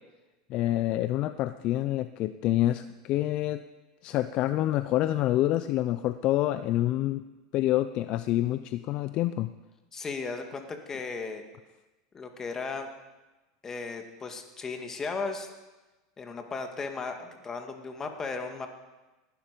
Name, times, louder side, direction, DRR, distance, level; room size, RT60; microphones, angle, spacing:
voice 1, 0.5-3.6 4.0-7.2 7.5-9.5, left 14 dB, 50° left, 12 dB, 0.5 m, -27 dB
voice 2, 9.9-11.4 12.1-12.9 13.6-15.5 16.2-18.7, left 4 dB, 25° left, 5 dB, 2.1 m, -36 dB
18.5 x 12.0 x 5.2 m, 1.2 s
supercardioid pair, 115°, 2 cm